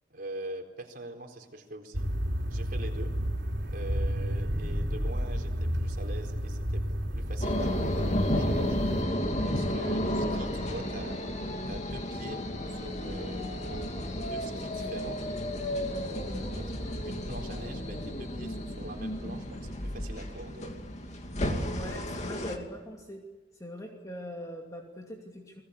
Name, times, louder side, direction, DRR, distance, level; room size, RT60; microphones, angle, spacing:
voice 1, 0.1-2.1 2.5-3.1 3.7-8.8 9.4-11.2 11.7-13.5 14.1-15.2 16.6-16.7 17.0-20.7, right 1 dB, 55° right, 2 dB, 4.3 m, -44 dB
sound 1, 1.9-9.0, equal, 85° right, 3.7 m, -31 dB
sound 2, 7.4-22.6, left 1 dB, 40° left, 2.6 m, -32 dB
voice 2, 21.6-23.2 23.6-25.6, left 1 dB, 20° left, 1 dB, 2.7 m, -41 dB
30.0 x 21.0 x 8.5 m, 1.2 s
head